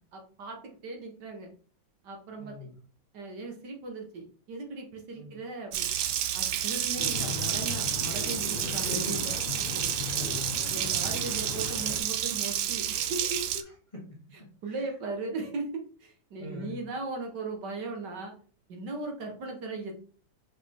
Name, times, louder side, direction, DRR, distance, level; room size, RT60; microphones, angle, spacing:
voice 1, 0.0-1.5 2.0-2.7 3.1-5.9 6.3-9.9 10.7-13.6 14.6-15.7 16.0-18.3 18.7-19.9, right 3 dB, 65° right, 2 dB, 1.8 m, -38 dB
voice 2, 2.4-2.7 5.1-5.4 8.8-9.2 10.1-10.6 14.1-14.9 16.4-16.8, left 2 dB, 20° left, -2 dB, 1.3 m, -43 dB
Water tap faucet, 5.7-13.6, right 11 dB, 85° right, 1.4 m, -30 dB
sound 1, 7.0-12.0, left 8 dB, 80° left, 1.5 m, -38 dB
5.2 x 5.1 x 3.6 m, 0.42 s
omnidirectional pair, 2.1 m